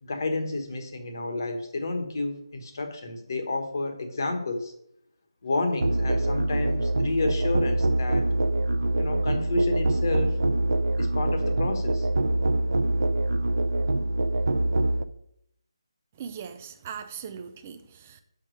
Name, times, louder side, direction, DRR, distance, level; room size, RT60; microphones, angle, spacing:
voice 1, 0.0-4.7 5.4-8.3 9.0-10.4 11.0-12.1, left 2 dB, 40° left, 5 dB, 1.2 m, -30 dB
Musical instrument, 5.8-15.0, right 1 dB, 70° right, 0.7 m, -24 dB
voice 2, 16.2-18.2, right 7 dB, 15° right, 8 dB, 0.4 m, -39 dB
7.1 x 5.0 x 6.3 m, 0.74 s
figure-of-eight pair, 175°, 3 cm